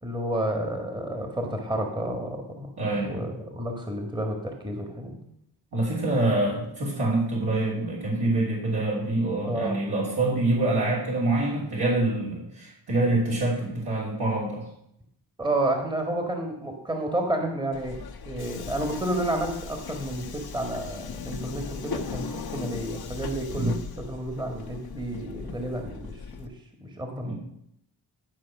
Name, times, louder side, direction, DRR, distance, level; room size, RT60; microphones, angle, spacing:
voice 1, 0.0-2.7 3.0-5.2 9.4-9.8 15.4-26.5 26.8-27.3, right 1 dB, 10° right, 3 dB, 1.7 m, -31 dB
voice 2, 2.8-3.2 5.7-14.7 23.5-23.7 27.2-27.3, right 2 dB, 60° right, -6 dB, 3.2 m, -26 dB
Subway metro underground, 17.7-26.5, left 5 dB, 60° left, 1.1 m, -38 dB
11.5 x 4.7 x 6.0 m, 0.76 s
cardioid pair, 65°, 43 cm